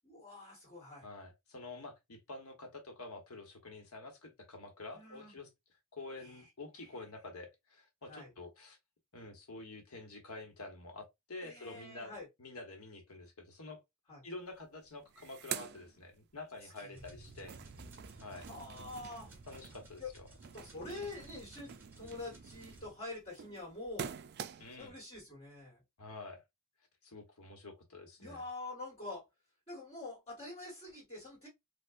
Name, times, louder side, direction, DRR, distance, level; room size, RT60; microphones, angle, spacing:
voice 1, 0.0-1.1 4.9-5.4 6.2-6.5 8.1-8.3 11.4-12.3 14.1-14.2 16.6-17.2 18.3-19.3 20.0-20.1 20.5-24.1 24.8-25.8 28.2-29.3 29.7-31.5, left 2 dB, 30° left, 1.8 m, -46 dB
voice 2, 1.0-5.5 5.9-8.8 9.1-13.8 14.2-17.6 18.2-18.5 19.5-20.3 20.9-21.1 24.6-25.0 26.0-26.4 27.0-28.4, left 2 dB, 90° left, 1.1 m, -48 dB
sound 1, 14.5-14.6 14.9-16.6 17.0-24.9, right 8 dB, 50° right, 0.3 m, -47 dB
sound 2, 16.9-22.9, right 2 dB, 10° right, 1.1 m, -56 dB
4.5 x 2.3 x 2.5 m
head